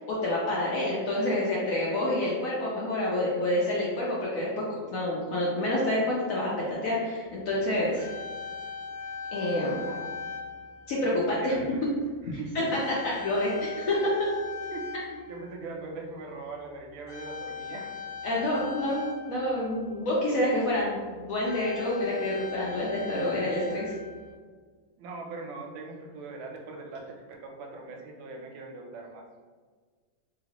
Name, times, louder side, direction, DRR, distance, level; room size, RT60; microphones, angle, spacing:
voice 1, 0.0-4.6 4.9-8.1 9.3-9.8 10.9-11.6 12.3-12.6 13.2-14.3 18.2-23.9, left 1 dB, 80° left, -5 dB, 0.7 m, -28 dB
sound 1, 7.5-7.6 7.7-11.3 12.0-12.2 12.6-15.9 17.1-20.1 20.8-20.9 21.2-24.3, left 5 dB, 10° right, 0.4 m, -40 dB
voice 2, 9.7-10.2 11.1-11.9 12.2-12.9 13.3-13.5 14.7-14.9 15.3-17.9 18.5-18.7 25.0-27.2 27.4-29.2, right 3 dB, 90° right, 1 dB, 1.4 m, -41 dB
2.9 x 2.9 x 2.8 m, 1.5 s
omnidirectional pair, 2.1 m